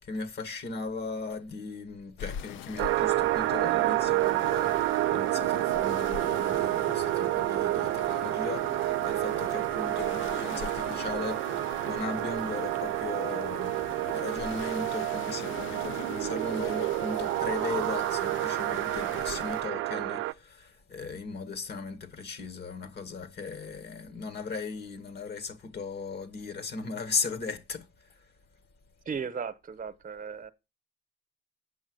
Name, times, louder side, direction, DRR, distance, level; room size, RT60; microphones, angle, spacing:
voice 1, 0.0-28.3, left 4 dB, 55° left, 1.9 m, -37 dB
sound 1, 2.2-19.6, left 11 dB, 80° left, 0.4 m, -43 dB
sound 2, 2.8-20.3, right 17 dB, 85° right, 0.5 m, -29 dB
voice 2, 29.1-30.5, right 6 dB, 45° right, 1.0 m, -36 dB
8.1 x 6.0 x 7.8 m
cardioid pair, 90°, 20 cm